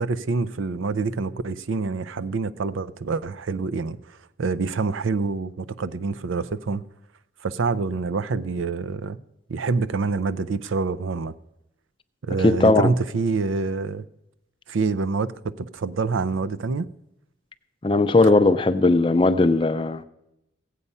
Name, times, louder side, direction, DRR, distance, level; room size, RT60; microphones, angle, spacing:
voice 1, 0.0-6.8 7.4-9.2 9.5-11.3 12.3-14.0 14.7-16.9, right 4 dB, 85° right, 0.5 m, -26 dB
voice 2, 12.4-12.9 17.8-20.0, left 2 dB, 25° left, 0.5 m, -18 dB
16.0 x 8.3 x 5.5 m
head